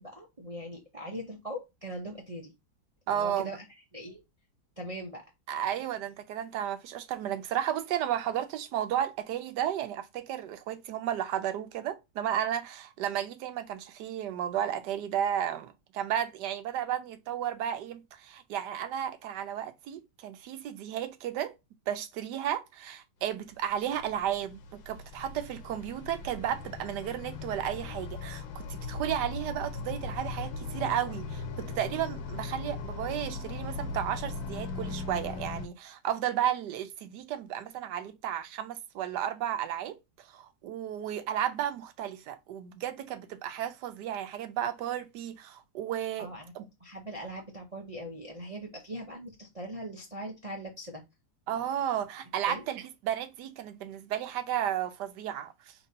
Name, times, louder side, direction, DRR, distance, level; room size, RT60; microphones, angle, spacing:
voice 1, 0.0-2.5 3.1-3.7 3.9-4.2 4.8-5.3 46.2-51.0 52.5-52.6, equal, 45° right, 0.4 m, -41 dB
voice 2, 3.1-3.5 5.5-21.5 21.9-46.3 46.6-46.7 51.5-55.7, right 10 dB, 70° right, 1.1 m, -33 dB
sound 1, 23.5-35.7, left 4 dB, 85° left, 1.7 m, -39 dB
5.6 x 2.9 x 2.7 m
omnidirectional pair, 2.1 m